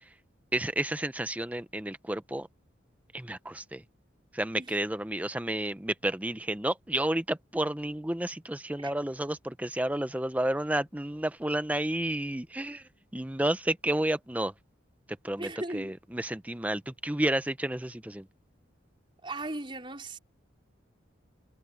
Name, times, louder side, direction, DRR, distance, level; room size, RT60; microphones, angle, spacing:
voice 1, 0.5-2.5 3.1-3.8 4.4-12.8 13.1-14.5 15.2-15.5 15.7-18.2, right 1 dB, 5° right, 0.6 m, -31 dB
voice 2, 15.4-15.9 19.2-20.2, right 2 dB, 25° right, 4.6 m, -37 dB
head